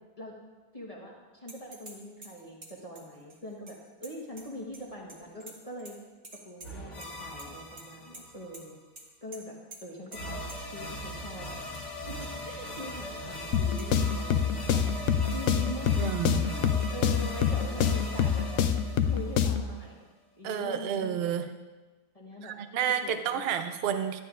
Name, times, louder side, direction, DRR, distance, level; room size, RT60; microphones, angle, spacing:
voice 1, 0.7-6.0 6.4-8.8 9.2-9.5 9.8-11.6 12.1-14.8 15.3-18.7 19.0-20.1 20.4-21.3 22.1-22.5 23.0-23.5, equal, 25° left, -3 dB, 1.3 m, -43 dB
sound 1, 1.5-1.9 2.2-4.8 5.1-5.9 6.2-7.1 7.4-7.9 8.1-8.2 8.5-8.6 9.0-9.1 9.3-9.4 9.7-9.8 10.1-10.2 10.5-10.6 11.5-11.9 12.2-12.3 12.8-12.9 13.8-13.9 15.3-15.4, right 2 dB, 35° right, 1.4 m, -48 dB
sound 2, 6.6-8.5 10.1-19.9, equal, 50° left, 1.6 m, -40 dB
sound 3, 13.5-19.7, left 8 dB, 70° left, 0.9 m, -27 dB
voice 2, 16.0-16.5 20.4-21.5 22.4-24.2, right 8 dB, 60° right, 9 dB, 0.6 m, -30 dB
12.0 x 11.0 x 2.4 m, 1.2 s
omnidirectional pair, 1.6 m